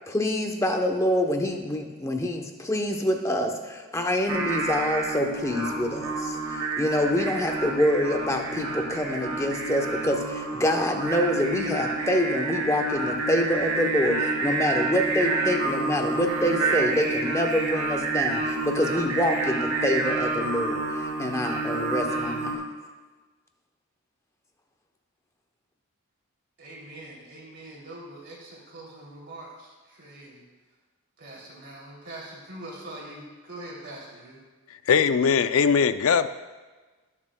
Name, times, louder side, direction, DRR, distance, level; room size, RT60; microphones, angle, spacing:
voice 1, 0.1-22.6, equal, 15° left, 3 dB, 0.8 m, -26 dB
Singing, 4.3-22.6, right 2 dB, 75° right, 2.3 m, -28 dB
voice 2, 26.6-30.4 31.2-34.4, right 1 dB, 50° right, -4 dB, 2.8 m, -43 dB
voice 3, 34.9-36.3, left 6 dB, 70° left, 12 dB, 0.4 m, -20 dB
19.5 x 7.3 x 2.2 m, 1.3 s
head